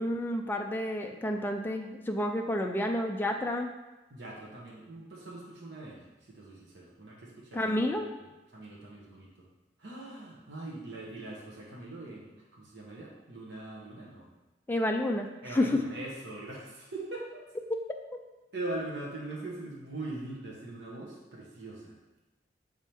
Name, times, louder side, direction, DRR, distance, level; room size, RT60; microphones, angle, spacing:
voice 1, 0.0-3.7 7.5-8.1 14.7-15.3 15.5-15.7, left 1 dB, 10° left, 3 dB, 0.4 m, -30 dB
voice 2, 4.1-9.5 9.8-14.3 15.4-17.4 18.5-21.9, right 2 dB, 75° right, -5 dB, 1.3 m, -42 dB
6.9 x 3.6 x 4.5 m, 1.1 s
head